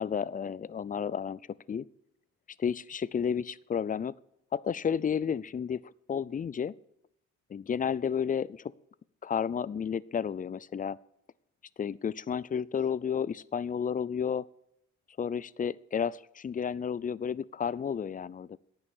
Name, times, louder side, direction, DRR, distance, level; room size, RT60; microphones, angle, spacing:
voice 1, 0.0-1.4 1.7-1.9 2.6-4.1 4.5-6.7 7.5-8.6 9.2-11.0 11.8-14.5 15.2-18.6, left 7 dB, 30° left, 21 dB, 0.5 m, -32 dB
11.0 x 9.0 x 8.4 m, 0.78 s
cardioid pair, 90°, 30 cm